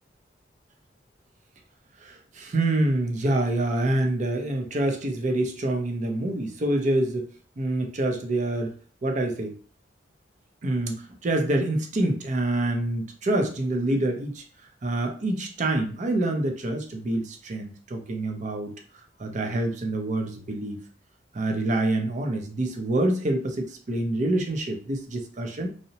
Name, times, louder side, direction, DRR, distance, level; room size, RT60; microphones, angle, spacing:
voice 1, 2.0-7.3 7.6-8.7 9.0-9.5 10.6-14.4 14.8-18.7 19.2-20.8 21.3-25.7, right 1 dB, 40° right, 4 dB, 0.5 m, -26 dB
2.7 x 2.0 x 2.7 m, 0.41 s
head